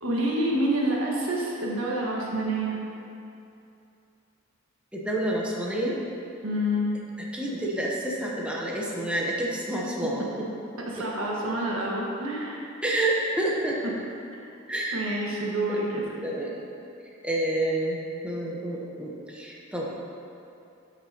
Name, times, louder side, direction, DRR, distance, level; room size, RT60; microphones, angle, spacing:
voice 1, 0.0-2.8 6.4-6.9 10.9-12.7 14.3-14.4 14.9-16.0, right 1 dB, 90° right, -3 dB, 1.4 m, -27 dB
voice 2, 4.9-6.0 7.2-10.5 11.0-11.1 12.8-13.8 14.7-15.0 16.2-16.6 17.2-18.0 18.2-20.1, right 1 dB, 5° right, -4 dB, 0.9 m, -29 dB
12.5 x 5.9 x 2.9 m, 2.6 s
head